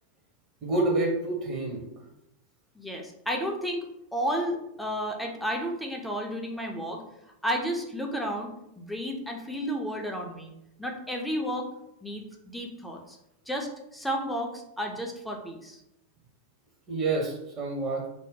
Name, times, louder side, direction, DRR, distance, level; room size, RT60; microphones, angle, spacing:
voice 1, 0.6-1.8 16.9-18.1, right 2 dB, 30° right, 0 dB, 0.8 m, -28 dB
voice 2, 2.8-3.9 4.1-7.0 7.4-10.5 10.8-11.7 12.0-13.2 13.5-15.8, equal, ahead, 1 dB, 0.5 m, -32 dB
2.6 x 2.0 x 3.7 m, 0.83 s
figure-of-eight pair, 90°, 0 cm